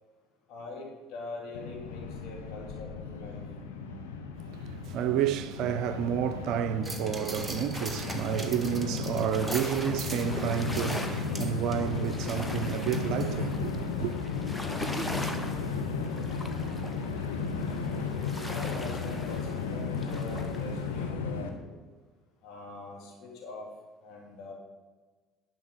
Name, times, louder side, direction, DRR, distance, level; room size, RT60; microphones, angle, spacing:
voice 1, 0.5-3.4 18.5-21.8 22.4-23.7 24.0-24.5, left 3 dB, 60° left, 2.8 m, -43 dB
Train, 1.5-21.5, left 4 dB, 80° left, 1.0 m, -34 dB
voice 2, 4.8-14.1, right 10 dB, 60° right, 0.5 m, -30 dB
sound 1, 6.8-13.7 14.1-14.2, right 2 dB, 10° right, 1.6 m, -42 dB
sound 2, 7.7-21.1, left 1 dB, 10° left, 1.2 m, -42 dB
11.0 x 5.2 x 6.9 m
figure-of-eight pair, 60°, 0 cm